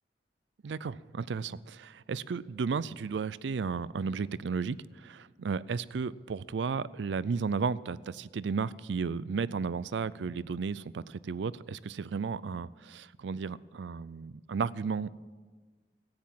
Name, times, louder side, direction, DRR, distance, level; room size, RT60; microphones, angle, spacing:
voice 1, 0.6-15.1, right 5 dB, 80° right, 19 dB, 0.4 m, -34 dB
14.5 x 9.6 x 7.4 m, 1.4 s
head